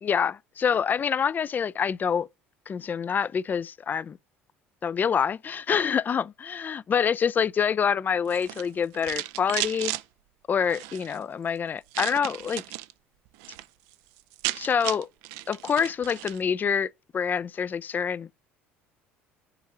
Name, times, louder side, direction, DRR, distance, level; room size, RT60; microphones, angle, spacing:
voice 1, 0.0-2.3 2.7-4.2 4.8-9.9 10.5-12.6 14.5-15.1 15.5-18.3, left 7 dB, 30° left, 0.4 m, -26 dB
sound 1, 8.2-10.0 10.6-11.2 11.9-12.9 13.3-13.7 13.9-14.0 14.2-16.4, right 17 dB, 60° right, 0.4 m, -34 dB
6.7 x 4.7 x 6.6 m
figure-of-eight pair, 60°, 6 cm